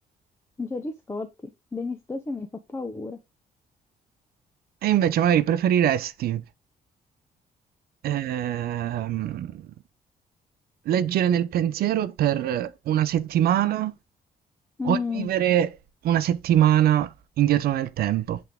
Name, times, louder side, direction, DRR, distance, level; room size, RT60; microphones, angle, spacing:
voice 1, 0.6-3.2 14.8-15.3, left 4 dB, 15° left, 0.7 m, -32 dB
voice 2, 4.8-6.4 8.0-9.6 10.9-13.9 14.8-15.7 16.0-18.4, right 11 dB, 80° right, 0.7 m, -23 dB
8.0 x 3.5 x 3.5 m
cardioid pair, 120°, 16 cm